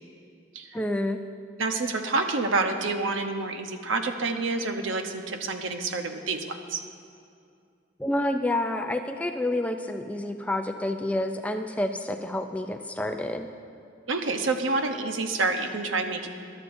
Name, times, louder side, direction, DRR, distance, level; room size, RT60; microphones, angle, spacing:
voice 1, 0.7-1.2 8.0-13.5, left 1 dB, 5° left, 5 dB, 0.4 m, -28 dB
voice 2, 1.6-6.8 14.1-16.3, right 3 dB, 80° right, 5 dB, 0.9 m, -28 dB
21.0 x 12.0 x 2.7 m, 2.4 s
head